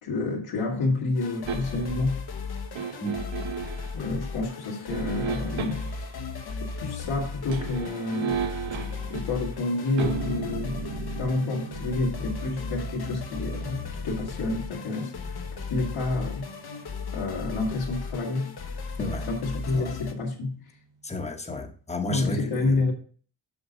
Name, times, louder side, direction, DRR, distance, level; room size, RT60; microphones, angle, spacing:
voice 1, 0.0-2.2 3.9-6.1 6.6-8.6 9.1-10.8 11.1-16.5 17.1-18.5 19.0-20.6 22.1-22.9, left 3 dB, 90° left, 2.5 m, -29 dB
sound 1, 1.1-20.1, left 4 dB, 55° left, 1.0 m, -36 dB
sound 2, 1.5-2.0 2.7-3.9 4.9-6.1 7.3-18.3 18.6-18.7, right 7 dB, 75° right, 1.0 m, -37 dB
voice 2, 21.0-22.7, left 1 dB, 15° left, 1.0 m, -32 dB
6.9 x 6.6 x 4.0 m
wide cardioid pair, 160°, 46 cm